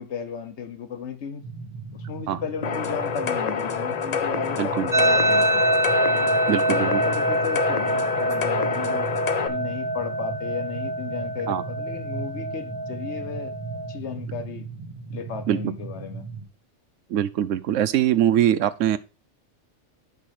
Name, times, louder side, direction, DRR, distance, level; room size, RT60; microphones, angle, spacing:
voice 1, 0.0-1.4 1.9-5.6 6.7-9.1 9.5-13.5 13.9-14.6 15.1-16.2, left 6 dB, 70° left, 1.3 m, -35 dB
sound 1, 1.4-16.4, right 5 dB, 60° right, 4.0 m, -37 dB
sound 2, 2.6-9.5, left 6 dB, 40° left, 0.7 m, -27 dB
voice 2, 4.6-4.9 6.5-7.0 11.5-11.6 15.5-15.7 17.1-19.0, right 11 dB, 90° right, 1.0 m, -22 dB
sound 3, 4.9-14.0, right 1 dB, 15° right, 0.9 m, -25 dB
7.4 x 6.1 x 4.7 m
omnidirectional pair, 1.2 m